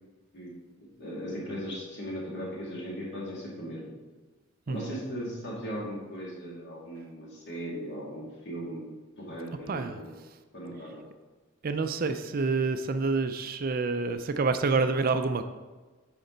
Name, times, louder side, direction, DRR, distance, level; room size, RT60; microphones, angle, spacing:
voice 1, 1.0-3.9 4.7-8.9 9.2-10.1 10.5-11.0, equal, 55° left, -4 dB, 2.5 m, -38 dB
voice 2, 4.7-5.0 9.7-10.0 11.6-15.4, right 4 dB, 45° right, 9 dB, 0.4 m, -28 dB
9.5 x 5.1 x 3.9 m, 1.3 s
head